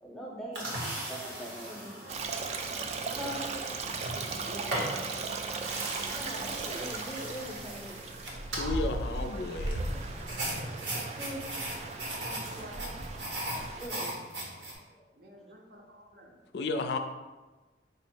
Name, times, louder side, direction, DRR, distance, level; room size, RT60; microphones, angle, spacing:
voice 1, 0.0-0.8 1.1-2.0 3.1-3.4 3.7-3.8 6.1-8.0 11.2-11.4 13.8-14.2 14.7-15.1, equal, ahead, -3 dB, 0.7 m, -41 dB
sound 1, 0.5-14.7, right 1 dB, 80° right, 1.0 m, -39 dB
voice 2, 0.6-2.2 4.0-4.9 8.5-9.6 12.1-13.0 15.1-16.4, equal, 60° right, 0 dB, 0.7 m, -48 dB
Stream, 2.1-13.9, right 3 dB, 40° right, 0.3 m, -37 dB
voice 3, 8.6-9.8 16.5-17.0, left 3 dB, 65° left, 6 dB, 0.3 m, -32 dB
5.0 x 2.0 x 4.3 m, 1.2 s
head